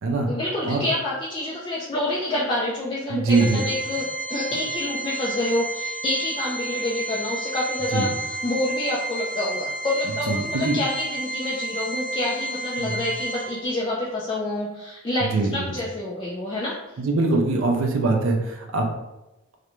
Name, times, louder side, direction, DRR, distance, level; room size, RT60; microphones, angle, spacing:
voice 1, 0.3-17.0, left 1 dB, 25° left, -6 dB, 0.3 m, -28 dB
voice 2, 3.1-3.6 7.9-8.1 10.3-10.8 12.8-13.0 15.3-15.7 17.0-18.9, right 3 dB, 70° right, 2 dB, 0.4 m, -23 dB
Organ, 3.3-13.9, right 2 dB, 45° right, 0.8 m, -31 dB
2.4 x 2.1 x 2.9 m, 0.96 s
head